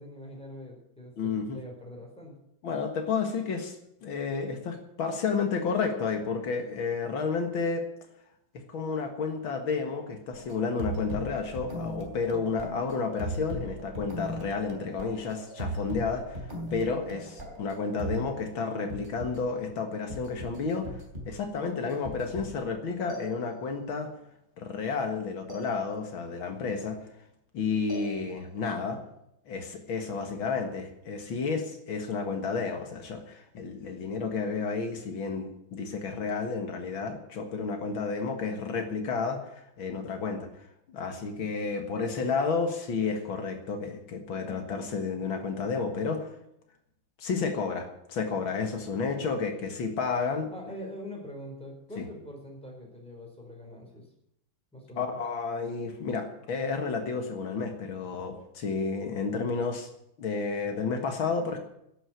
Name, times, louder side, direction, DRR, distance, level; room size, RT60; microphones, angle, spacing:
voice 1, 0.0-2.4 50.5-54.1 54.7-55.2, left 1 dB, 5° left, 0 dB, 4.4 m, -44 dB
voice 2, 1.2-1.6 2.6-3.8 4.0-7.9 8.5-16.4 16.7-20.9 21.3-24.1 24.6-27.0 27.5-29.0 29.5-40.5 40.9-46.3 47.2-50.5 52.0-52.1 55.0-59.9 60.2-61.6, left 5 dB, 85° left, 5 dB, 2.5 m, -31 dB
sound 1, 10.3-18.3 18.9-19.4 20.1-21.5 21.9-22.7 23.1-23.9 25.5-26.3 27.9-28.7, equal, 25° right, 3.3 m, -39 dB
11.5 x 8.9 x 9.4 m, 0.78 s
omnidirectional pair, 2.2 m